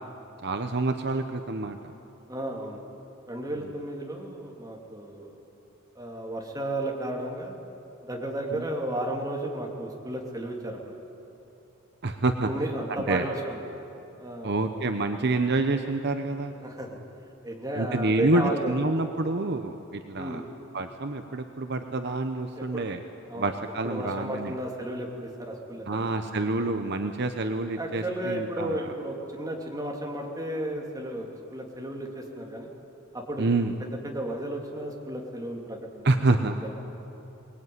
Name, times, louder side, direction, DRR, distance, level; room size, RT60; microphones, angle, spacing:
voice 1, 0.4-1.8 8.5-8.7 12.0-12.5 13.1-13.3 14.4-16.5 17.7-20.4 20.7-23.0 23.3-24.5 25.9-28.9 33.4-33.7 36.0-36.6, right 2 dB, 50° right, 7 dB, 0.9 m, -27 dB
voice 2, 2.3-2.8 3.3-5.3 5.9-7.6 8.0-11.0 12.4-13.6 14.2-14.7 16.6-17.0 17.4-18.7 20.2-20.5 22.6-22.8 23.3-23.5 23.8-26.1 27.8-32.7 33.1-33.5 34.0-36.7, right 1 dB, 15° right, 0 dB, 3.1 m, -33 dB
23.0 x 20.0 x 9.7 m, 2.9 s
head